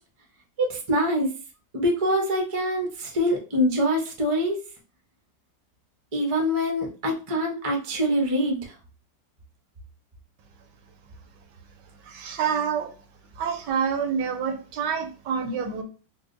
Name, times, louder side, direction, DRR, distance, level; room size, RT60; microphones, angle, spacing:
voice 1, 0.6-1.3 1.7-4.6 6.1-8.7, equal, 55° right, 0 dB, 0.3 m, -24 dB
voice 2, 12.0-12.9 13.4-15.8, right 7 dB, 75° right, 6 dB, 1.1 m, -27 dB
4.5 x 2.1 x 2.5 m, 0.35 s
omnidirectional pair, 2.0 m